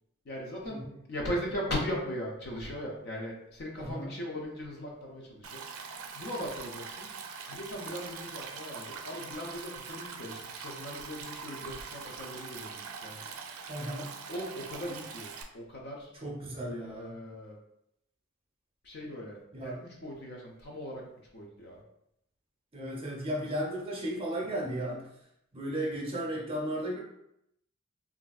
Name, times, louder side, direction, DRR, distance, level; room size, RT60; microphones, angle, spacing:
voice 1, 0.2-7.1 7.5-13.3 14.3-16.1 16.8-17.6 18.8-21.8, equal, 50° left, -2 dB, 0.5 m, -39 dB
voice 2, 3.8-4.1 13.7-14.1 16.2-17.2 19.5-19.8 22.7-25.1 25.5-27.0, right 1 dB, 25° right, -3 dB, 0.7 m, -35 dB
Stream, 5.4-15.4, right 5 dB, 90° right, 0.4 m, -43 dB
3.2 x 2.5 x 2.3 m, 0.78 s
head